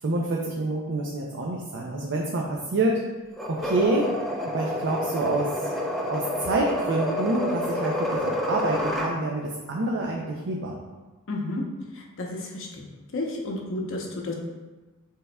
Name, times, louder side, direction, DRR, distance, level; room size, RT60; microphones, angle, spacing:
voice 1, 0.0-3.0 3.5-4.1 4.4-5.5 6.1-10.8, right 2 dB, 55° right, -1 dB, 0.5 m, -27 dB
sound 1, 3.4-9.1, left 1 dB, ahead, 0.5 m, -29 dB
Brass instrument, 4.2-8.5, right 3 dB, 80° right, 0.9 m, -45 dB
voice 2, 11.3-11.6 11.9-12.8 13.1-14.3, left 2 dB, 65° left, 0 dB, 0.8 m, -31 dB
6.5 x 3.5 x 2.2 m, 1.2 s
head